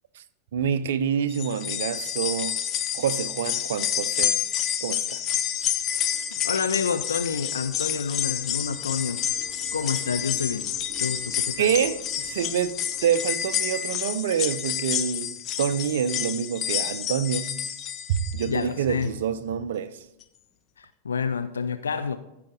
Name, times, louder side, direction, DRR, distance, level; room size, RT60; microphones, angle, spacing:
voice 1, 0.5-2.6 2.9-4.4 4.8-5.5 11.6-17.6 18.1-20.1, right 8 dB, 60° right, 0.6 m, -27 dB
sound 1, 1.3-18.6 19.0-19.1 20.2-20.3, left 9 dB, 35° left, 0.8 m, -29 dB
sound 2, 4.5-14.6, right 1 dB, 15° left, 3.9 m, -51 dB
voice 2, 6.1-10.7 11.0-11.7 18.4-19.1 20.8-22.2, left 6 dB, 70° left, 0.4 m, -29 dB
14.5 x 5.0 x 5.0 m
figure-of-eight pair, 90°, 0 cm